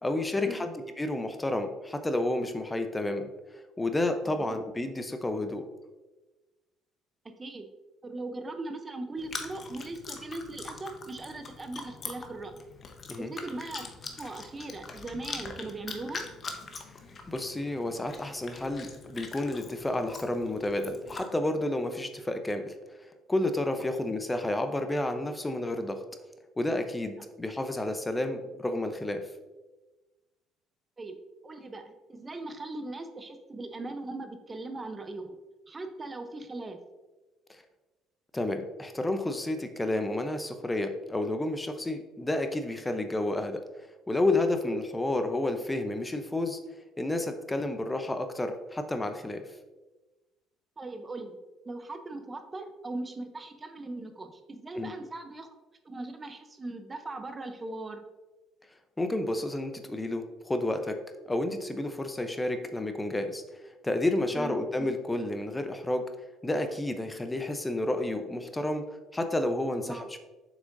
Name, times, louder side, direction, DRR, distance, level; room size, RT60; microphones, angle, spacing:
voice 1, 0.0-5.6 13.1-13.3 17.3-22.7 23.0-26.0 26.6-29.3 37.5-37.6 38.3-43.6 44.1-46.6 47.0-49.4 54.7-54.9 59.0-61.0 61.3-66.1 66.4-68.9 69.1-70.2, left 1 dB, 15° left, 7 dB, 0.7 m, -30 dB
voice 2, 7.2-7.7 8.0-12.5 13.2-13.9 14.2-16.2 27.2-27.3 31.0-31.2 31.4-35.4 35.7-36.8 50.8-51.4 51.6-55.5 55.8-58.0 64.3-64.5 69.9-70.1, right 2 dB, 25° right, 8 dB, 0.7 m, -39 dB
Chewing mastication, 9.2-21.3, left 4 dB, 40° left, 0.9 m, -43 dB
7.4 x 6.1 x 2.6 m, 1.2 s
supercardioid pair, 70°, 0 cm